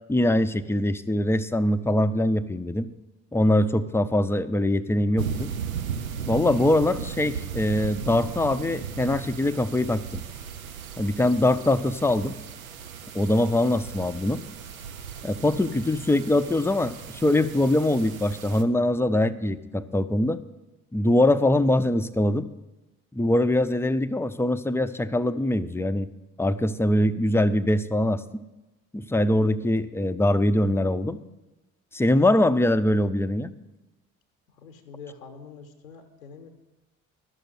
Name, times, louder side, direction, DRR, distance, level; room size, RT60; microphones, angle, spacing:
voice 1, 0.1-2.9 3.3-5.5 6.3-10.0 11.0-12.4 13.1-14.4 15.2-20.4 20.9-22.5 23.1-26.1 26.4-28.4 28.9-31.2 31.9-33.5, left 1 dB, 5° left, 12 dB, 0.5 m, -23 dB
sound 1, 5.2-18.6, right 7 dB, 85° right, 0.6 m, -36 dB
voice 2, 34.5-36.5, left 5 dB, 85° left, 7 dB, 0.9 m, -45 dB
12.5 x 6.5 x 7.7 m, 1.1 s
figure-of-eight pair, 45°, 40 cm